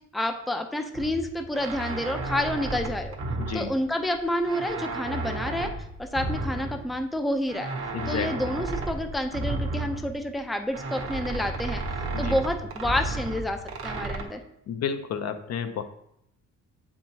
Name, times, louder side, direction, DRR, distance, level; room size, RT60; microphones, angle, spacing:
voice 1, 0.1-3.2 3.5-5.7 6.0-7.7 8.1-11.8 12.2-13.6 13.8-14.4, left 1 dB, ahead, 6 dB, 0.5 m, -29 dB
sound 1, 0.9-4.2 4.4-7.1 7.5-10.4 10.7-14.2, right 2 dB, 50° right, 1.0 m, -33 dB
voice 2, 3.4-3.7 7.9-8.5 12.1-12.3 14.7-15.8, left 7 dB, 60° left, 8 dB, 0.6 m, -31 dB
7.3 x 4.6 x 2.8 m, 0.78 s
cardioid pair, 90°, 30 cm